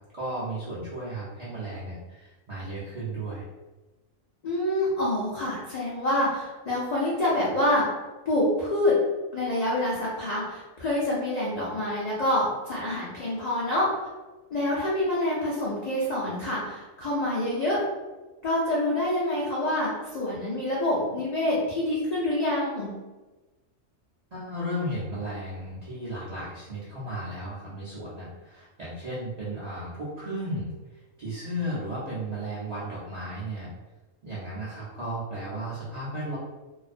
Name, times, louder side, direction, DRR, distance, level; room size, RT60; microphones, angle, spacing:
voice 1, 0.1-3.4 24.3-30.7 31.2-33.7 34.2-36.4, right 1 dB, 55° right, -9 dB, 0.4 m, -34 dB
voice 2, 4.4-7.9 8.3-9.0 9.3-14.1 14.5-17.8 18.4-22.9, left 1 dB, 85° left, -7 dB, 0.3 m, -26 dB
2.4 x 2.1 x 2.4 m, 1.2 s
omnidirectional pair, 1.4 m